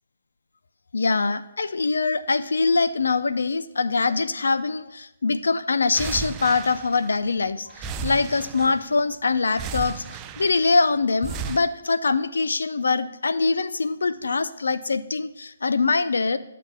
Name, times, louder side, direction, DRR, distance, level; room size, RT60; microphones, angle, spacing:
voice 1, 0.9-10.0 10.4-16.4, left 4 dB, 85° left, 14 dB, 0.4 m, -23 dB
sound 1, 5.9-7.4 7.7-9.0 9.5-10.8 11.2-11.6, right 6 dB, 20° right, 0.4 m, -34 dB
12.0 x 7.5 x 2.2 m, 0.89 s
hypercardioid pair, 145°, 0 cm